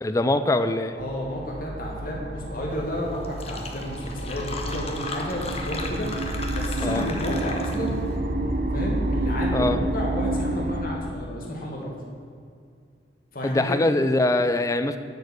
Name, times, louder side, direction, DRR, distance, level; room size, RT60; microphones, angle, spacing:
voice 1, 0.0-1.0 6.8-7.1 9.5-9.8 13.4-15.0, left 2 dB, 20° left, 9 dB, 0.4 m, -23 dB
voice 2, 0.9-6.1 6.5-8.0 8.7-11.9 13.3-13.8, left 1 dB, 50° left, -2 dB, 1.8 m, -32 dB
sound 1, 1.0-10.9, right 1 dB, 50° right, 0.9 m, -29 dB
Fill (with liquid), 2.9-3.0 3.2-8.0, left 3 dB, 35° left, 1.0 m, -36 dB
10.5 x 5.0 x 8.0 m, 2.3 s
head